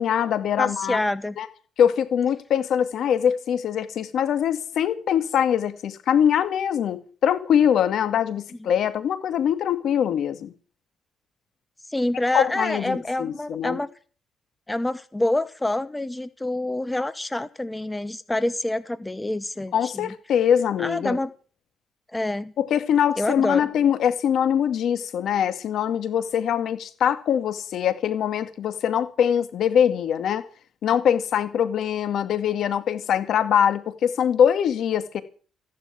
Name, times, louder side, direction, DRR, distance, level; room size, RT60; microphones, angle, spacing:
voice 1, 0.0-1.0 1.4-1.5 1.8-10.5 12.3-13.8 19.7-21.2 22.6-30.4 30.8-35.2, left 9 dB, 70° left, 2.1 m, -23 dB
voice 2, 0.6-1.4 11.9-13.9 14.7-20.1 20.8-21.3 22.1-22.5 23.2-23.7, left 1 dB, 10° left, 1.0 m, -27 dB
15.5 x 11.5 x 7.5 m
cardioid pair, 90°, 0 cm